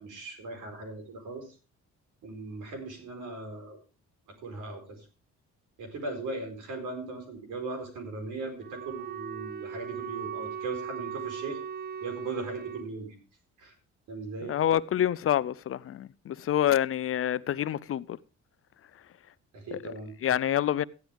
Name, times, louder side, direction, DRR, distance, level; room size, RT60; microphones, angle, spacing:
voice 1, 0.0-1.4 2.2-3.8 4.4-5.1 5.8-11.6 12.0-13.2 13.6-13.7 14.1-14.6 19.5-20.1, right 3 dB, 85° right, 4.4 m, -38 dB
Wind instrument woodwind instrument, 8.5-12.9, right 7 dB, 30° right, 0.6 m, -38 dB
voice 2, 14.5-18.2 19.7-19.8 20.2-20.8, left 11 dB, 45° left, 0.5 m, -27 dB
14.5 x 10.5 x 3.5 m
cardioid pair, 90°, 30 cm